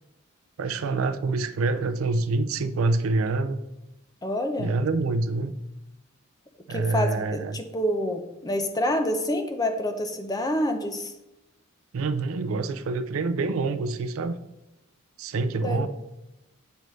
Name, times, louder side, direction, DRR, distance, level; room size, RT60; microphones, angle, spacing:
voice 1, 0.6-3.6 4.6-5.5 6.7-7.6 11.9-14.4 15.2-15.9, right 3 dB, 80° right, 11 dB, 0.4 m, -26 dB
voice 2, 4.2-4.7 6.7-11.1 15.6-15.9, left 1 dB, 20° left, 6 dB, 0.6 m, -27 dB
7.8 x 5.2 x 3.2 m, 0.96 s
head